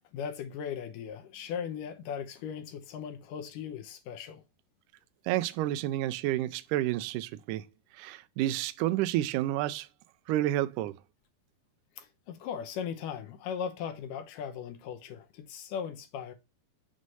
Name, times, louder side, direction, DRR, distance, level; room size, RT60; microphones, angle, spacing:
voice 1, 0.1-4.4 12.0-16.3, left 7 dB, 80° left, 2.2 m, -38 dB
voice 2, 5.3-7.7 7.9-9.9 10.3-11.0, right 14 dB, 80° right, 1.9 m, -30 dB
6.3 x 3.1 x 5.4 m
omnidirectional pair, 4.1 m